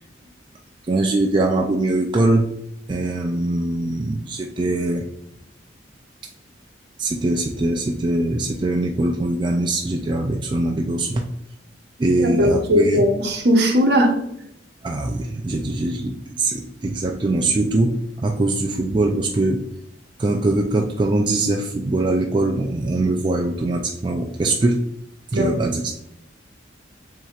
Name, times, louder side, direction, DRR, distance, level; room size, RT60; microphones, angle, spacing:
voice 1, 0.8-2.5 2.9-5.1 7.0-11.2 12.0-13.1 14.8-19.6 20.2-24.8 25.3-25.9, right 2 dB, 25° right, 2 dB, 0.3 m, -22 dB
voice 2, 12.2-14.2 25.3-25.5, equal, 60° right, 3 dB, 0.8 m, -18 dB
7.4 x 2.7 x 2.4 m, 0.79 s
head